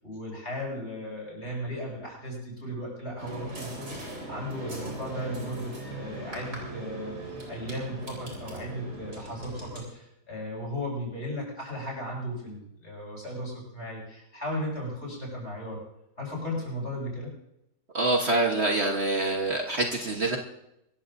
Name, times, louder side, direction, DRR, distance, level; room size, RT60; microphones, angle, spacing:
voice 1, 0.0-3.9 4.3-15.8 16.2-17.3, equal, 45° left, -3 dB, 8.2 m, -36 dB
sound 1, 3.2-9.8, right 1 dB, 75° right, 4.9 m, -39 dB
voice 2, 17.9-20.4, right 2 dB, 45° right, 1 dB, 1.4 m, -25 dB
24.5 x 14.5 x 2.7 m, 0.82 s
omnidirectional pair, 1.7 m